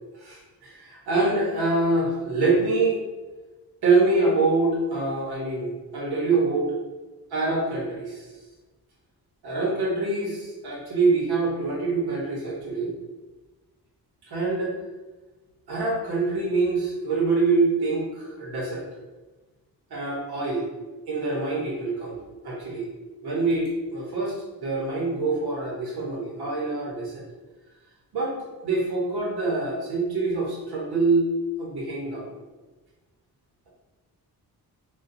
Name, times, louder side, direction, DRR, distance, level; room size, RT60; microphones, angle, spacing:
voice 1, 0.2-3.0 3.8-6.7 7.3-8.2 9.4-12.9 14.3-14.7 15.7-18.8 19.9-20.6 21.1-22.2 22.4-22.8 23.2-27.2 28.1-28.4 28.6-31.3 31.6-32.3, right 3 dB, 90° right, -3 dB, 1.0 m, -25 dB
4.0 x 2.4 x 2.6 m, 1.2 s
cardioid pair, 70°, 37 cm